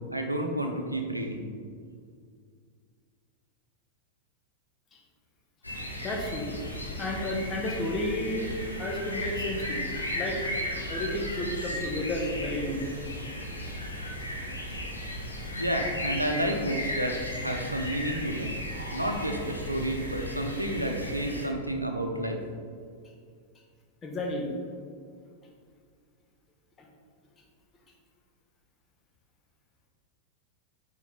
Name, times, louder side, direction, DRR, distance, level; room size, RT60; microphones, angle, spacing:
voice 1, 0.1-1.5 15.6-18.6 18.9-22.4, right 1 dB, 85° right, 3 dB, 0.6 m, -30 dB
sound 1, 5.6-21.5, left 1 dB, 85° left, 1.0 m, -35 dB
voice 2, 6.0-6.5 7.0-8.5 8.8-9.8 10.1-10.5 10.9-12.8 24.0-24.5 26.8-26.9, left 1 dB, 20° left, -1 dB, 1.1 m, -32 dB
9.1 x 3.0 x 3.9 m, 2.1 s
figure-of-eight pair, 90°, 0 cm